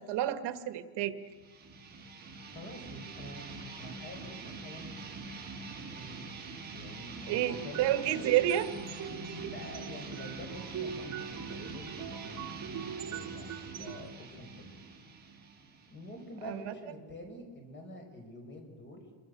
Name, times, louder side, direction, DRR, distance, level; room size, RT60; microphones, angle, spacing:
voice 1, 0.1-1.1 7.3-8.7 9.3-9.5 16.4-16.6, right 13 dB, 70° right, 10 dB, 1.7 m, -29 dB
sound 1, 1.3-16.7, right 3 dB, 20° right, 6.0 m, -45 dB
voice 2, 2.5-5.0 5.7-6.4 6.7-8.3 9.5-14.7 15.7-19.1, left 1 dB, 25° left, 4 dB, 5.7 m, -47 dB
sound 2, 7.3-14.1, right 7 dB, 45° right, 2.3 m, -42 dB
28.0 x 23.5 x 6.7 m, 1.4 s
cardioid pair, 165°, 43 cm